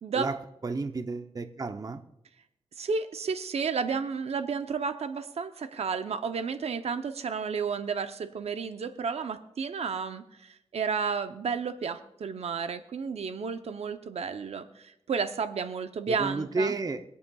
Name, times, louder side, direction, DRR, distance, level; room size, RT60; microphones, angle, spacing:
voice 1, 0.1-2.0 16.1-17.0, right 3 dB, 35° right, 0.7 m, -32 dB
voice 2, 2.8-16.7, right 5 dB, 75° right, 0.7 m, -32 dB
24.5 x 8.4 x 2.3 m
cardioid pair, 80°, 11 cm